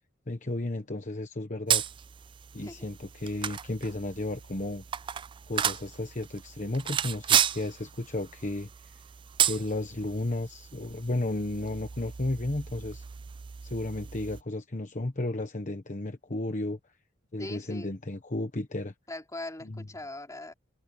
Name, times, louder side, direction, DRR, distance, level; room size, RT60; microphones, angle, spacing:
voice 1, 0.3-1.8 2.5-4.8 5.5-8.9 9.4-13.0 13.6-16.8 17.3-18.9 19.6-19.9, left 2 dB, 40° left, 1.1 m, -33 dB
sound 1, 1.7-14.4, right 9 dB, 25° right, 0.3 m, -33 dB
voice 2, 17.4-17.9 19.1-20.5, left 2 dB, 15° left, 3.4 m, -40 dB
head